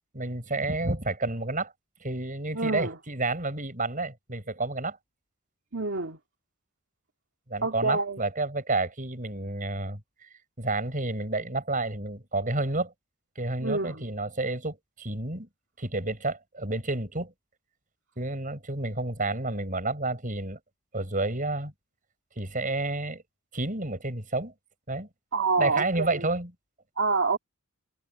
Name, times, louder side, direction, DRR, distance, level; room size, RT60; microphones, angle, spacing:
voice 1, 0.1-1.7 2.0-5.0 7.5-10.0 10.6-12.9 13.3-15.5 15.8-17.3 18.2-20.6 20.9-21.7 22.3-23.2 23.5-24.5 24.9-25.1 25.6-26.5, right 2 dB, 35° right, 6.6 m, -30 dB
voice 2, 2.5-3.0 5.7-6.2 7.6-8.2 13.6-14.0 25.3-26.2 27.0-27.4, right 3 dB, 55° right, 2.6 m, -27 dB
head